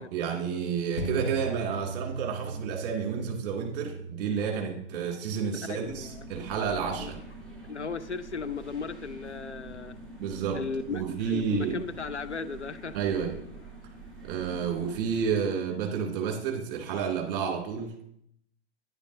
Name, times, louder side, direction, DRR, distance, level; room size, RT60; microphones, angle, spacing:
voice 1, 0.0-7.2 10.2-10.6 10.9-11.8 12.9-13.4 14.2-17.9, right 7 dB, 35° right, 0 dB, 2.4 m, -30 dB
sound 1, 1.0-9.8 10.2-10.3, right 2 dB, 70° left, 2.3 m, -40 dB
voice 2, 5.7-6.2 7.0-7.1 7.6-10.0 10.5-13.0, left 5 dB, 90° left, 11 dB, 0.7 m, -36 dB
sound 2, 5.8-15.4, right 2 dB, ahead, 2.5 m, -45 dB
10.0 x 10.0 x 2.7 m, 0.72 s
figure-of-eight pair, 110°, 33 cm